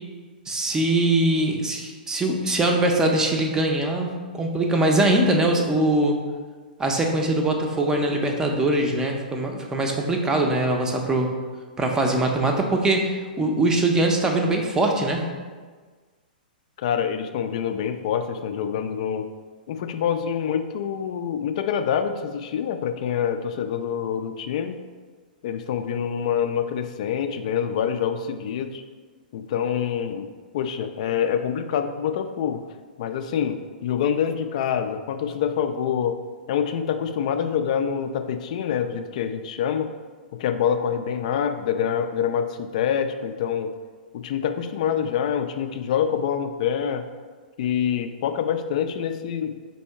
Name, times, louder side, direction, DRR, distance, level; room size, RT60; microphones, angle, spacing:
voice 1, 0.5-6.2 6.8-11.3 11.8-15.2, right 2 dB, 10° right, 2 dB, 0.5 m, -22 dB
voice 2, 16.8-19.3 19.7-24.8 25.4-28.8 29.3-30.3 30.5-32.6 33.0-36.2 36.5-39.9 40.4-43.7 44.1-47.0 47.6-49.5, left 8 dB, 50° left, 8 dB, 0.3 m, -26 dB
4.3 x 2.7 x 4.4 m, 1.5 s
figure-of-eight pair, 105°, 5 cm